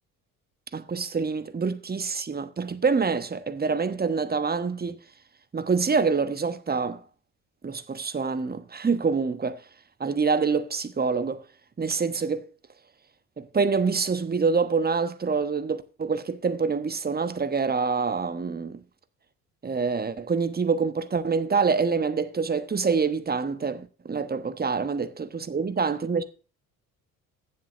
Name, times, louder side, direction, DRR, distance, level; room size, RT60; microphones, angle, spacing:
voice 1, 0.7-5.0 5.5-7.0 7.6-9.6 10.0-11.4 11.8-12.5 13.4-18.8 19.6-26.2, right 5 dB, 20° right, 1.1 m, -26 dB
8.8 x 7.4 x 6.3 m
hypercardioid pair, 55°, 43 cm